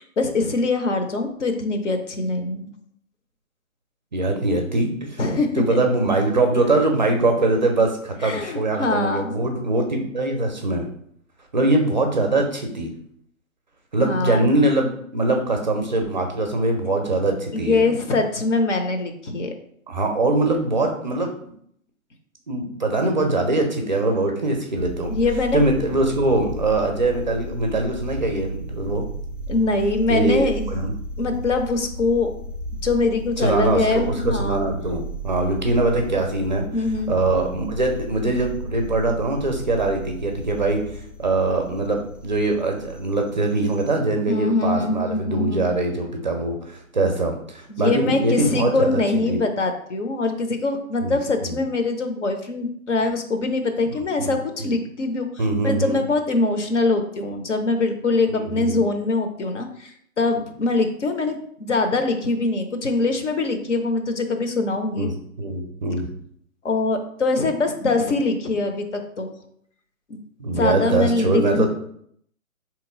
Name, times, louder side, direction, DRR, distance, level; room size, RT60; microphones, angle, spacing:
voice 1, 0.0-2.7 5.2-5.8 6.5-6.7 8.2-9.4 14.0-14.4 17.5-19.5 25.1-25.6 29.5-30.8 31.2-32.3 32.8-34.7 36.7-37.2 44.3-45.7 47.7-65.1 66.6-69.3 70.1-70.2 70.5-71.7, left 3 dB, 55° left, 5 dB, 0.8 m, -23 dB
voice 2, 4.1-5.2 5.5-10.9 11.5-12.9 13.9-17.8 19.9-21.3 22.5-25.1 25.5-29.1 30.1-30.9 33.4-36.6 37.1-40.8 41.2-49.0 49.3-49.4 51.0-51.6 54.2-54.3 54.6-54.7 55.4-56.0 58.3-58.8 65.0-65.1 65.4-66.1 70.4-71.7, right 2 dB, 35° right, 3 dB, 0.5 m, -22 dB
sound 1, 24.7-43.9, equal, 30° left, 0.4 m, -34 dB
4.1 x 3.0 x 3.7 m, 0.67 s
figure-of-eight pair, 135°, 42 cm